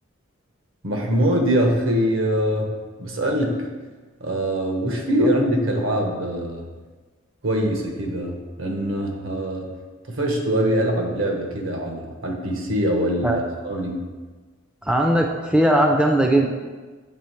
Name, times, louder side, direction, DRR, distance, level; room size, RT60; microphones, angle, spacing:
voice 1, 0.8-2.7 3.0-3.7 4.2-6.7 7.4-9.7 10.1-14.1, equal, 70° right, 2 dB, 1.0 m, -23 dB
voice 2, 14.8-16.5, right 1 dB, 5° right, 1 dB, 0.3 m, -19 dB
7.5 x 3.2 x 4.4 m, 1.4 s
head